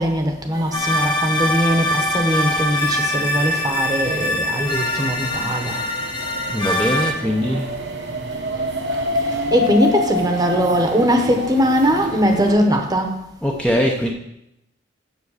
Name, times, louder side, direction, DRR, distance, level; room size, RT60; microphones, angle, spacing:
voice 1, 0.0-5.8 9.2-13.2, equal, 20° right, 4 dB, 1.1 m, -20 dB
sound 1, 0.5-12.5, left 1 dB, 60° right, 1.1 m, -29 dB
sound 2, 0.7-7.1, left 1 dB, 25° left, 1.0 m, -23 dB
voice 2, 6.5-7.7 13.4-14.1, equal, 5° left, -1 dB, 0.7 m, -21 dB
7.3 x 6.6 x 6.5 m, 0.83 s
head